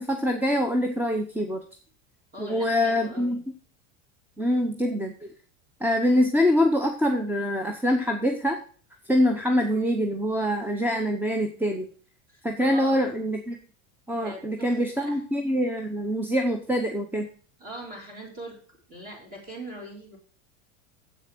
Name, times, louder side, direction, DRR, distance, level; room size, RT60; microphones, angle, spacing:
voice 1, 0.0-1.6 2.4-3.4 4.4-5.3 5.8-8.6 9.1-11.9 12.4-13.6 14.1-17.3, equal, 5° right, 5 dB, 0.8 m, -24 dB
voice 2, 2.3-3.4 12.3-13.2 14.2-15.2 17.6-20.2, right 1 dB, 25° right, -1 dB, 3.6 m, -42 dB
7.8 x 6.3 x 6.0 m, 0.42 s
supercardioid pair, 130°, 37 cm